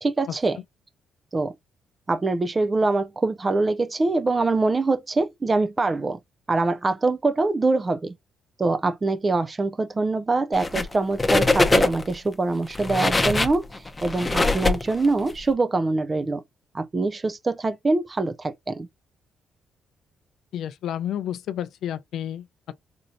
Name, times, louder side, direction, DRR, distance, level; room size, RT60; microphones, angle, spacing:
voice 1, 0.0-0.6 1.3-1.5 2.1-6.2 6.5-8.1 8.6-16.4 16.7-18.9, right 3 dB, 25° right, 0.3 m, -24 dB
sound 1, 10.5-10.9 11.2-12.1 12.7-15.3, left 3 dB, 20° left, 0.7 m, -22 dB
voice 2, 20.5-22.7, left 10 dB, 75° left, 0.3 m, -31 dB
4.2 x 2.6 x 2.5 m
cardioid pair, 90°, 0 cm